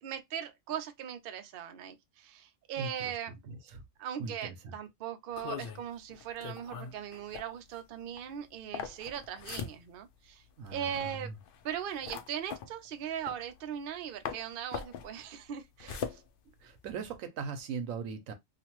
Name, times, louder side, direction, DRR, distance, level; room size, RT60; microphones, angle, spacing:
voice 1, 0.0-3.3 4.0-10.4 10.7-11.3 11.6-16.2, right 9 dB, 60° right, 0.6 m, -39 dB
voice 2, 2.8-3.1 3.4-3.8 4.2-4.7 10.6-11.3 16.6-18.3, right 5 dB, 85° right, 1.1 m, -40 dB
sound 1, 5.3-14.0 14.2-17.1, left 7 dB, 65° left, 0.5 m, -42 dB
2.9 x 2.5 x 2.9 m
omnidirectional pair, 1.4 m